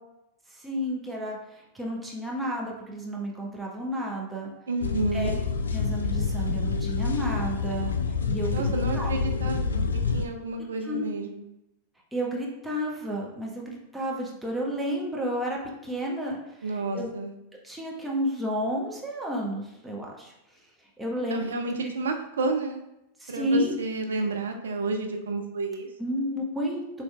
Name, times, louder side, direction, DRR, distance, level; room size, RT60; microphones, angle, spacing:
voice 1, 0.5-4.5 5.1-5.3 5.7-7.9 8.2-9.1 10.6-11.1 12.1-17.1 17.6-20.3 21.0-21.5 23.2-23.8 26.0-27.0, equal, 5° right, -3 dB, 1.1 m, -31 dB
voice 2, 4.7-5.3 8.5-9.9 10.1-11.4 16.6-17.3 21.3-22.8 23.3-25.9, right 3 dB, 65° right, 4 dB, 0.4 m, -30 dB
sound 1, 4.8-10.3, left 5 dB, 70° left, 0.3 m, -27 dB
6.8 x 3.1 x 2.3 m, 0.87 s
figure-of-eight pair, 90°, 0 cm